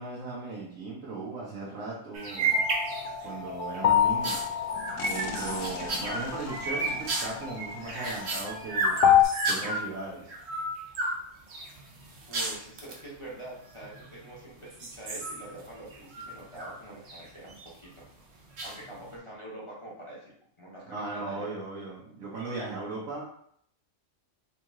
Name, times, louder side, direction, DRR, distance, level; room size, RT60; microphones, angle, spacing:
voice 1, 0.0-2.7 3.2-4.4 5.0-9.1 9.5-10.3 20.9-23.2, right 3 dB, 85° right, -5 dB, 1.3 m, -37 dB
sound 1, 2.1-3.3 3.7-9.9 10.3-11.2 11.5-13.0 13.8-14.4 14.7-16.8 17.1-17.7 18.6-19.1, right 2 dB, 60° right, 1.1 m, -32 dB
sound 2, 2.5-9.2, left 9 dB, 90° left, 1.0 m, -28 dB
voice 2, 12.3-18.1 18.6-20.3 20.6-21.5, right 1 dB, 25° left, -6 dB, 0.9 m, -45 dB
3.7 x 3.1 x 3.5 m, 0.66 s
omnidirectional pair, 1.3 m